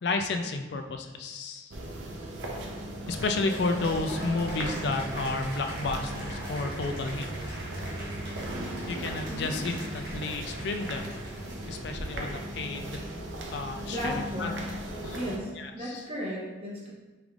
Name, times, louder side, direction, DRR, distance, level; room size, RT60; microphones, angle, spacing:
voice 1, 0.0-1.7 3.1-7.3 8.9-11.1 11.7-13.0 13.5-14.5 15.0-15.2 15.6-16.0, left 3 dB, 60° left, 5 dB, 0.4 m, -32 dB
sound 1, 1.7-15.4, right 1 dB, 80° right, 0.6 m, -37 dB
Cheering / Applause, 3.1-12.7, right 1 dB, 55° right, 1.4 m, -43 dB
voice 2, 9.3-9.6 12.9-13.1 13.9-14.7 15.1-16.9, equal, 30° right, -5 dB, 0.9 m, -35 dB
5.2 x 3.3 x 2.4 m, 1.2 s
head